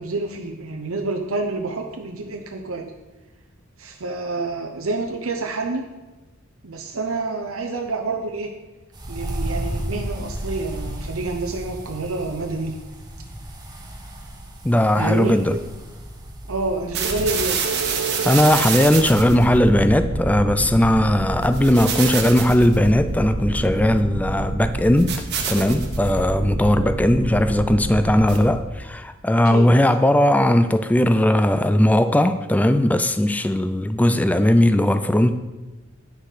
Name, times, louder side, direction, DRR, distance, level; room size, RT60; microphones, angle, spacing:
voice 1, 0.0-2.9 3.8-5.9 6.6-8.5 9.1-12.8 15.0-15.6 16.5-17.7 26.4-26.6 29.4-29.7, right 3 dB, 70° right, 3 dB, 0.7 m, -28 dB
sound 1, 8.9-18.6, right 1 dB, 20° right, 1.3 m, -34 dB
voice 2, 14.6-15.6 18.2-25.2 25.5-35.3, left 1 dB, 5° left, 10 dB, 0.3 m, -18 dB
sound 2, 16.9-28.7, right 3 dB, 50° right, 1.3 m, -27 dB
9.5 x 6.6 x 4.9 m, 1.2 s
head